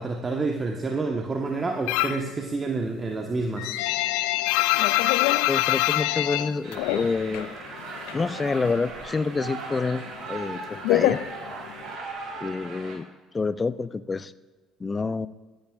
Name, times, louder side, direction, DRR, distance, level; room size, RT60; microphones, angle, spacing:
voice 1, 0.0-3.8, right 3 dB, 30° right, 2 dB, 1.3 m, -28 dB
sound 1, 1.9-2.3 2.7-7.5 7.8-8.9 9.1-12.0, left 17 dB, 70° left, 0.3 m, -25 dB
voice 2, 5.5-7.5 8.1-11.2 12.4-13.1 13.3-14.3 14.8-15.3, left 4 dB, 30° left, 15 dB, 0.6 m, -28 dB
sound 2, 6.6-13.0, right 3 dB, 55° right, 4.0 m, -38 dB
24.0 x 10.5 x 2.5 m, 1.3 s
hypercardioid pair, 55°, 0 cm